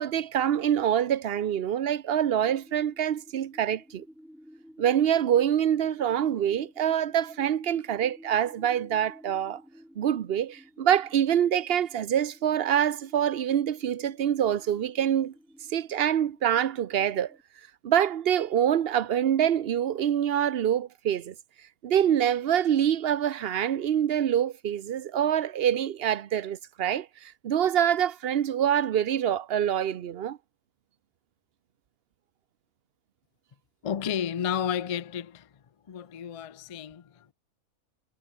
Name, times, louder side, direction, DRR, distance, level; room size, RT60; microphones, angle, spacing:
voice 1, 0.0-4.0 4.8-9.6 10.0-15.3 15.7-17.4 17.8-21.3 21.8-30.4, right 10 dB, 55° right, 0.8 m, -25 dB
sound 1, 2.4-17.4, equal, ahead, 3.4 m, -52 dB
voice 2, 33.8-35.5 35.9-37.3, left 8 dB, 65° left, 0.3 m, -32 dB
omnidirectional pair, 1.5 m